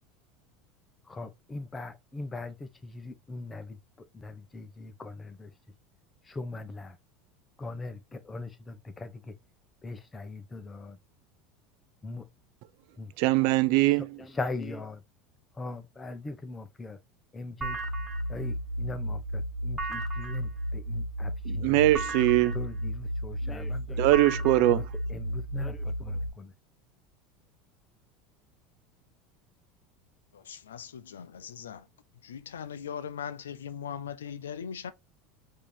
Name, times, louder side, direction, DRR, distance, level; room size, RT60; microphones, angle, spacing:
voice 1, 1.0-5.5 6.2-7.0 7.6-9.3 9.8-11.0 12.0-12.3 13.0-13.1 13.9-15.0 15.5-17.0 17.3-17.8 18.3-21.9 22.5-24.0 24.7-24.8 25.1-26.5, left 3 dB, 20° left, 0.9 m, -40 dB
voice 2, 13.2-14.1 21.5-22.6 24.0-24.8, right 16 dB, 65° right, 0.4 m, -22 dB
sound 1, 17.6-26.3, equal, 10° right, 1.5 m, -33 dB
voice 3, 30.3-31.8 32.2-34.9, left 8 dB, 85° left, 0.4 m, -39 dB
4.7 x 2.9 x 3.3 m
hypercardioid pair, 85°, 0 cm